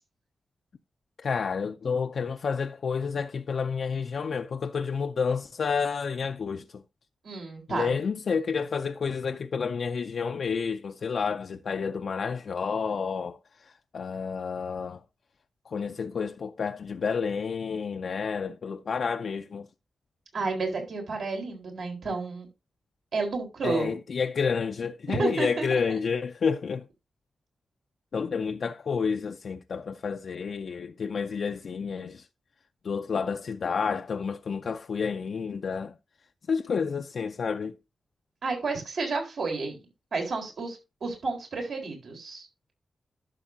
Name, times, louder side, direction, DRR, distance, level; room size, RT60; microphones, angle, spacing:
voice 1, 1.2-6.8 7.7-15.0 15.7-19.7 23.6-26.9 28.1-32.3 32.8-35.9 36.5-37.8, left 5 dB, 70° left, 0.4 m, -30 dB
voice 2, 7.2-7.9 20.3-22.5 23.1-24.0 25.1-25.8 38.4-39.8 40.1-42.5, right 3 dB, 75° right, 3.8 m, -31 dB
11.5 x 6.8 x 2.7 m
cardioid pair, 65°, 0 cm